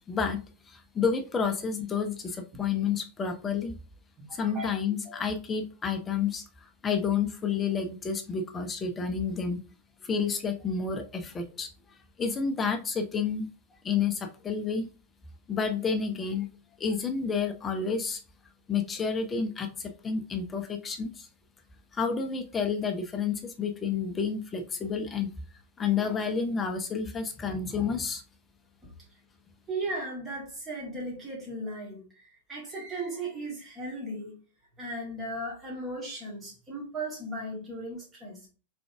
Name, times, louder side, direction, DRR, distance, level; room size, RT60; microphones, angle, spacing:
voice 1, 0.1-0.4 0.7-3.8 4.3-9.6 10.0-13.5 13.8-14.9 15.5-16.5 16.8-18.2 18.7-21.3 21.9-25.3 25.8-28.2, left 6 dB, 20° left, 0.6 m, -30 dB
voice 2, 4.2-4.7 5.1-5.2 29.7-34.4 34.8-38.5, right 1 dB, 20° right, 2.1 m, -37 dB
3.7 x 3.4 x 3.4 m
figure-of-eight pair, 90°, 0 cm